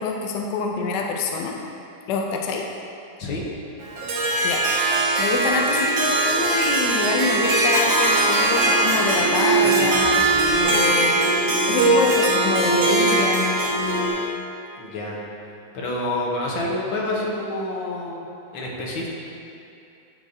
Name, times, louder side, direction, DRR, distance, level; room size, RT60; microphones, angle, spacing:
voice 1, 0.0-1.5 2.1-2.7 4.4-4.6 5.2-10.3 10.5-13.5, left 4 dB, 70° left, 0 dB, 1.1 m, -26 dB
Harp, 3.8-14.3, right 2 dB, 75° right, 1.6 m, -21 dB
sound 1, 7.7-11.0, equal, 50° right, 1.8 m, -30 dB
sound 2, 8.4-14.1, equal, 45° left, 1.4 m, -28 dB
voice 2, 14.8-15.2 15.7-18.3 18.5-19.1, left 1 dB, 85° left, -3 dB, 1.8 m, -28 dB
9.4 x 4.9 x 2.7 m, 2.7 s
omnidirectional pair, 2.1 m